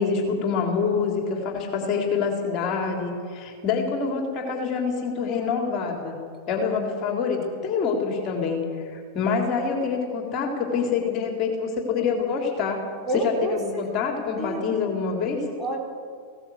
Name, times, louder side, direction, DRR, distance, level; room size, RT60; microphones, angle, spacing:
voice 1, 0.0-6.2 6.5-8.6 8.9-12.8 13.2-15.4, left 5 dB, 35° left, 2 dB, 3.7 m, -26 dB
voice 2, 13.0-13.8 14.4-14.6 15.6-15.8, right 2 dB, 15° right, -1 dB, 4.5 m, -28 dB
20.0 x 17.5 x 8.0 m, 2.1 s
figure-of-eight pair, 90°, 0 cm